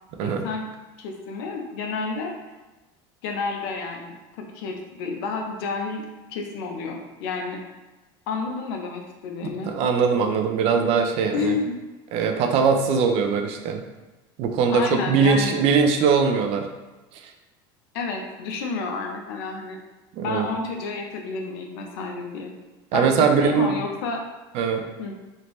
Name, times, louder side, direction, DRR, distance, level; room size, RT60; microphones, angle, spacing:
voice 1, 0.2-0.7 1.0-2.3 3.2-7.6 8.3-9.7 11.3-11.8 14.7-15.6 17.9-19.8 20.2-22.5 22.9-24.2 25.0-25.1, left 4 dB, 75° left, 2 dB, 0.6 m, -30 dB
voice 2, 9.4-11.6 12.1-13.8 14.4-16.7 20.1-20.5 22.9-23.7 24.5-24.8, right 5 dB, 55° right, 5 dB, 0.4 m, -21 dB
3.2 x 2.7 x 3.0 m, 1.1 s
supercardioid pair, 120°, 12 cm